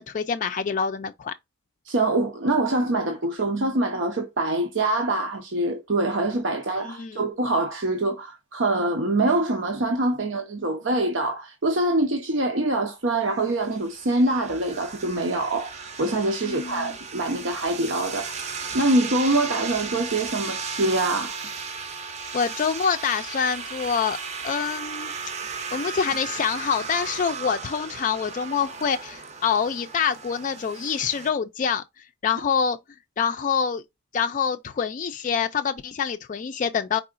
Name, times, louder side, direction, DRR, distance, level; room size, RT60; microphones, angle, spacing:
voice 1, 0.1-1.3 6.8-7.2 16.4-16.9 22.3-24.2 24.4-25.1 25.7-31.8 32.2-32.8 33.2-33.8 34.1-37.0, left 6 dB, 40° left, 0.3 m, -26 dB
voice 2, 1.9-21.4, right 2 dB, 85° right, 0.8 m, -24 dB
sound 1, 13.4-31.3, right 5 dB, 35° right, 0.6 m, -35 dB
4.7 x 3.8 x 2.5 m
head